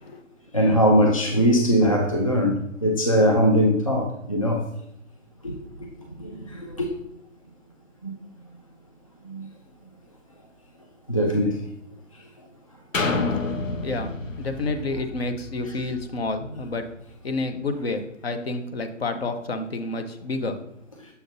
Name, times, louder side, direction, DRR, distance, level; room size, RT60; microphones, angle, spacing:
voice 1, 0.5-4.6 5.4-5.5 6.2-6.9 8.0-8.1 9.2-9.5 11.1-11.6 15.6-15.8, equal, 30° left, 1 dB, 0.4 m, -21 dB
sound 1, 12.9-16.7 17.2-17.3, left 3 dB, 85° left, 1.0 m, -29 dB
voice 2, 14.4-16.8 17.2-20.6, left 3 dB, 50° left, 7 dB, 0.9 m, -29 dB
6.8 x 5.8 x 2.7 m, 0.79 s
figure-of-eight pair, 155°, 38 cm